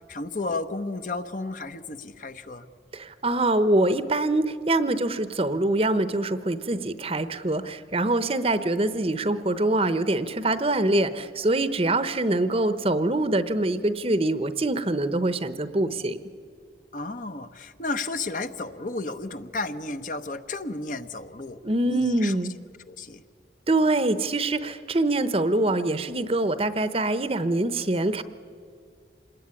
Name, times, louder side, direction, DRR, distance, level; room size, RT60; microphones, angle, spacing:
voice 1, 0.1-2.7 16.9-21.6 21.9-22.3 22.9-23.2, left 3 dB, 45° left, 9 dB, 1.0 m, -33 dB
voice 2, 2.9-16.2 21.6-22.5 23.7-28.2, right 2 dB, 30° right, 12 dB, 0.9 m, -24 dB
26.5 x 20.5 x 9.8 m, 2.2 s
head